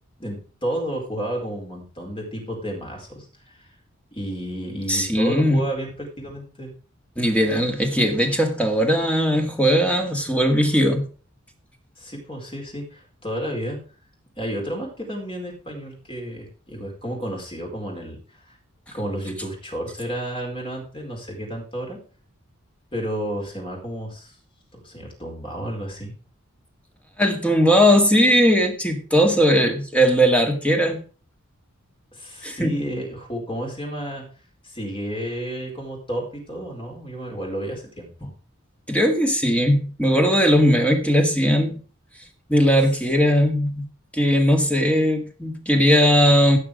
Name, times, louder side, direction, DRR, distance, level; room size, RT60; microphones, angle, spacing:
voice 1, 0.2-3.3 3.5-3.7 4.1-6.7 12.0-13.8 14.4-18.2 18.9-22.0 22.9-24.4 24.7-26.1 32.1-34.2 34.6-38.3, equal, 25° left, 0 dB, 4.6 m, -31 dB
voice 2, 4.9-5.6 7.2-11.0 27.2-31.0 32.4-32.8 38.9-41.8 42.5-43.9 44.1-46.6, equal, 5° left, 3 dB, 1.9 m, -19 dB
16.0 x 5.9 x 5.1 m, 0.39 s
head